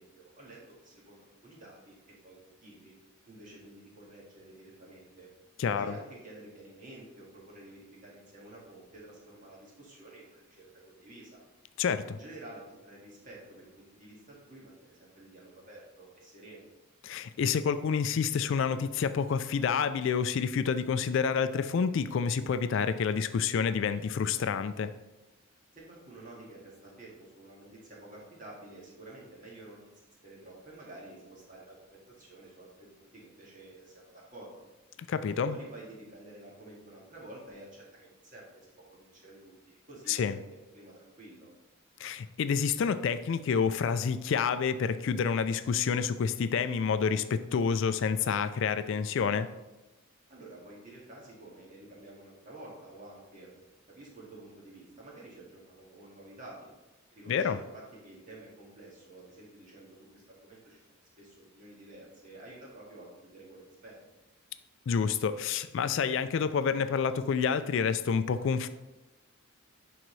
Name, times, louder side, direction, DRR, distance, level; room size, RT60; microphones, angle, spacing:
voice 1, 0.0-2.9 3.2-5.3 5.7-11.4 12.1-16.7 25.7-29.9 30.2-34.5 35.4-41.5 50.3-53.5 53.9-56.7 57.1-64.0 67.0-67.1, right 2 dB, 40° right, -4 dB, 1.9 m, -50 dB
voice 2, 17.0-24.9 35.1-35.6 40.1-40.4 42.0-49.5 57.3-57.6 64.9-68.7, left 6 dB, 60° left, 12 dB, 0.3 m, -28 dB
10.5 x 3.9 x 3.2 m, 1.0 s
head